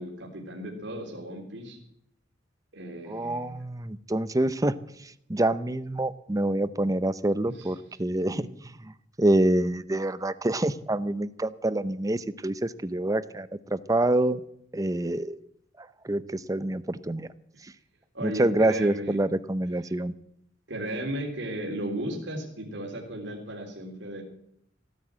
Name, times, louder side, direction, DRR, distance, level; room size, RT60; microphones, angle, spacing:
voice 1, 0.0-1.8 2.7-3.5 7.6-7.7 8.3-8.4 18.1-19.2 20.7-24.2, right 1 dB, 70° right, 0 dB, 3.6 m, -35 dB
voice 2, 3.1-4.7 5.0-8.5 9.2-14.4 14.7-15.4 15.8-17.3 17.6-17.7 18.2-20.1, right 1 dB, 20° right, 15 dB, 0.6 m, -26 dB
16.5 x 9.5 x 7.6 m, 0.73 s
head